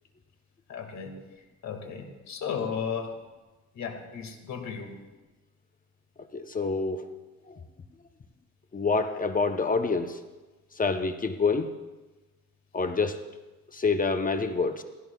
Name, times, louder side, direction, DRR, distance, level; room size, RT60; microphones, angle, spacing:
voice 1, 0.7-1.1 1.6-3.1 3.7-4.9, left 6 dB, 65° left, 5 dB, 1.9 m, -34 dB
voice 2, 6.3-7.1 7.5-7.6 8.7-10.2 10.7-11.7 12.7-13.2 13.7-14.8, left 4 dB, 30° left, 7 dB, 0.7 m, -27 dB
17.0 x 16.0 x 2.3 m, 1.2 s
cardioid pair, 90°, 30 cm